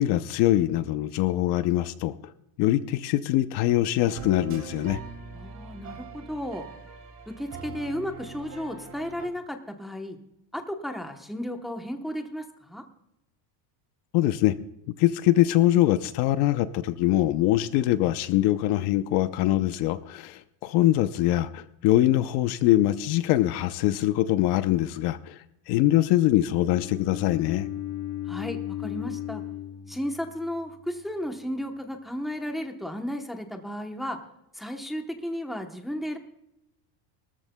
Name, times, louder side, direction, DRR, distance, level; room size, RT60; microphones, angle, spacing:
voice 1, 0.0-2.1 2.6-5.0 14.1-14.6 14.9-27.7, left 14 dB, 60° left, 12 dB, 0.7 m, -23 dB
sound 1, 4.0-9.3, right 4 dB, 40° right, 3.0 m, -42 dB
voice 2, 5.3-6.7 7.3-10.2 10.5-12.8 28.3-29.4 29.9-34.2 34.5-36.2, equal, ahead, 4 dB, 0.9 m, -34 dB
Bowed string instrument, 26.6-30.7, left 12 dB, 90° left, 5.5 m, -36 dB
22.0 x 14.0 x 2.2 m, 0.83 s
cardioid pair, 150°, 45 cm